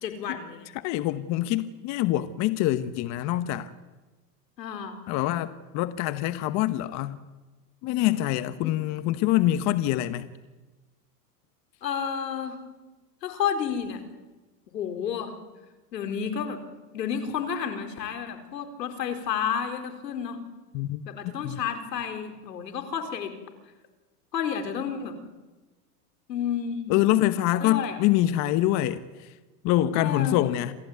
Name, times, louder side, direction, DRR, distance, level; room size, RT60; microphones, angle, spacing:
voice 1, 0.0-0.7 4.6-5.0 11.8-12.6 13.2-14.0 14.7-15.3 15.9-16.6 16.9-20.4 21.1-23.3 24.3-25.2 26.3-27.0 27.6-28.0 29.9-30.4, left 7 dB, 90° left, 4.3 m, -31 dB
voice 2, 0.7-3.7 5.1-7.2 7.8-10.3 20.7-21.6 26.9-29.3 29.6-30.7, left 14 dB, 35° left, 1.0 m, -25 dB
27.0 x 16.0 x 9.4 m
supercardioid pair, 140°, 48 cm